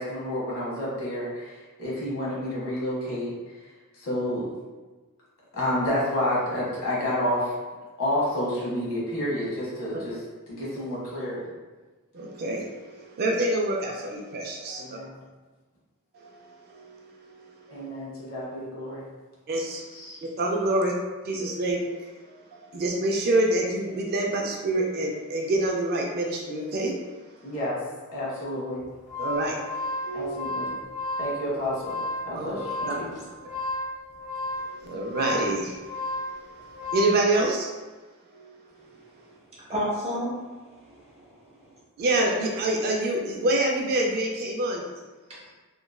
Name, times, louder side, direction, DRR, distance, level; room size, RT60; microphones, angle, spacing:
voice 1, 0.0-3.3 4.0-4.5 5.5-7.5 8.0-10.2 10.5-11.5 14.8-15.2 17.7-19.1 19.9-20.2 27.4-27.8 28.1-28.8 30.1-30.8 31.2-33.2, left 1 dB, 65° left, -6 dB, 1.0 m, -30 dB
voice 2, 12.1-15.0 16.1-17.8 19.5-19.9 20.4-20.9 21.2-27.1 29.2-29.6 30.0-30.3 32.3-32.5 32.9-33.0 34.6-35.9 36.2-36.4 36.9-37.7 38.3-38.5 42.0-44.8, right 1 dB, 45° right, 0 dB, 0.3 m, -27 dB
sound 1, 28.8-37.3, left 1 dB, ahead, 1.1 m, -33 dB
voice 3, 39.7-41.6, equal, 30° right, -7 dB, 0.8 m, -32 dB
2.9 x 2.4 x 2.2 m, 1.3 s
head